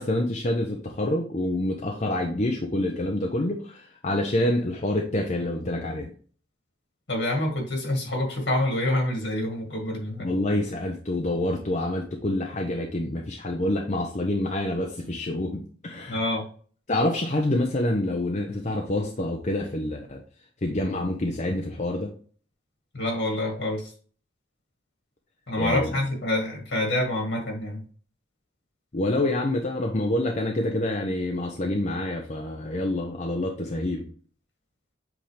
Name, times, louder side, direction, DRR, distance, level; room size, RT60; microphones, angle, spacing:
voice 1, 0.0-6.1 10.2-16.2 16.9-20.2 20.6-22.1 25.6-25.9 28.9-34.0, left 1 dB, 40° left, 1 dB, 0.7 m, -27 dB
voice 2, 7.1-10.3 16.1-16.5 22.9-23.9 25.5-27.8, left 1 dB, 70° left, 1 dB, 2.0 m, -27 dB
7.8 x 3.7 x 3.4 m, 0.43 s
head